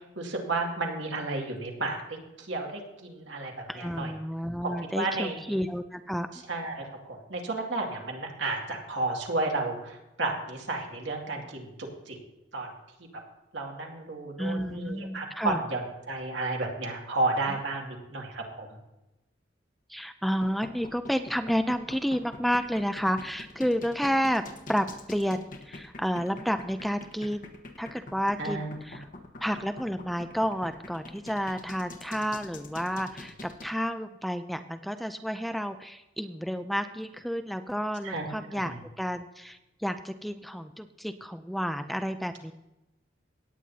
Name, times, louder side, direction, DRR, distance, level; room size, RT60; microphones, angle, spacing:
voice 1, 0.2-2.0 2.4-3.5 3.8-4.1 4.6-5.6 6.5-12.2 12.5-12.7 13.5-18.7 28.4-28.7 38.0-38.2 38.6-38.7, right 2 dB, 75° right, 0 dB, 2.3 m, -32 dB
voice 2, 3.7-6.3 14.4-15.6 17.5-17.6 19.9-24.4 24.7-27.5 27.8-29.1 29.4-42.5, equal, ahead, 8 dB, 0.4 m, -31 dB
sound 1, 20.2-33.7, left 2 dB, 50° left, 1.2 m, -44 dB
17.5 x 9.2 x 2.8 m, 0.96 s
head